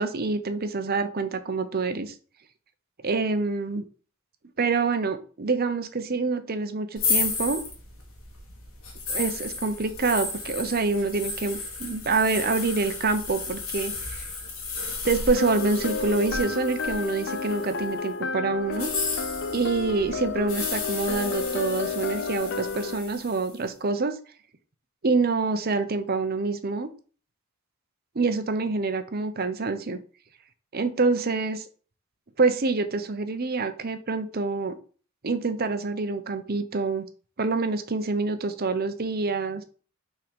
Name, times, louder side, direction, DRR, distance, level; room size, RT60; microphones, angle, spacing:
voice 1, 0.0-2.1 3.0-3.8 4.6-7.6 9.1-14.2 15.0-18.9 19.5-24.2 25.0-26.9 28.1-30.0 30.7-31.6 32.4-34.8 35.2-37.0 37.4-39.6, right 3 dB, 45° right, 9 dB, 0.8 m, -26 dB
sound 1, 7.0-17.9 18.7-23.5, left 4 dB, 75° left, 1.7 m, -33 dB
sound 2, 15.4-23.0, left 5 dB, 55° left, 0.5 m, -31 dB
5.8 x 3.8 x 5.2 m, 0.40 s
head